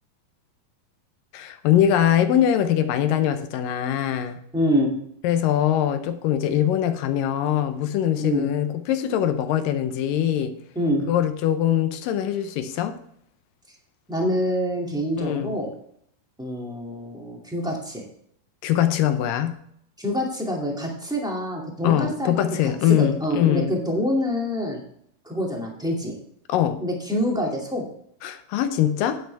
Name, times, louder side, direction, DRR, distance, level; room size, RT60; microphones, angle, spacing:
voice 1, 1.3-4.4 5.2-10.5 11.1-13.0 15.2-15.6 18.6-19.6 21.8-23.7 26.5-26.8 28.2-29.2, left 10 dB, 80° left, 2.4 m, -22 dB
voice 2, 4.5-4.9 8.2-8.5 10.7-11.0 14.1-15.7 16.4-18.0 20.0-22.3 22.6-24.8 25.2-26.1 26.8-27.8, equal, ahead, 1.6 m, -26 dB
11.0 x 8.9 x 3.4 m
omnidirectional pair, 4.0 m